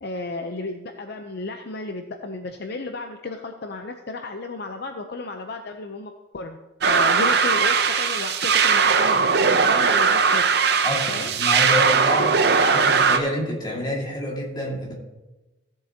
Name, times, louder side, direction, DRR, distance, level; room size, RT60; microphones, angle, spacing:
voice 1, 0.0-6.6 6.9-10.5 11.0-11.3 12.5-13.0, left 3 dB, 55° left, 5 dB, 0.6 m, -33 dB
sound 1, 6.8-13.2, right 5 dB, 55° right, 0.7 m, -19 dB
voice 2, 10.8-12.3 12.7-14.9, left 1 dB, 20° left, -2 dB, 2.1 m, -28 dB
16.0 x 7.6 x 2.8 m, 1.1 s
head